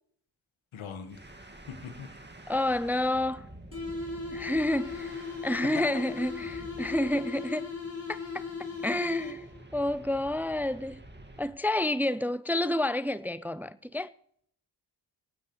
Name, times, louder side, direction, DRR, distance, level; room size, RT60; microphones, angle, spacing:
voice 1, 0.7-2.2 5.7-5.9, left 6 dB, 85° left, 1.7 m, -41 dB
sound 1, 1.1-11.6, right 1 dB, 20° right, 1.9 m, -49 dB
voice 2, 2.5-3.5 4.3-7.7 8.1-8.5 8.8-9.4 9.7-11.0 11.4-14.1, left 1 dB, 5° right, 0.4 m, -29 dB
sound 2, 3.7-9.7, left 4 dB, 30° left, 4.3 m, -38 dB
25.5 x 9.2 x 3.1 m
cardioid pair, 45°, 47 cm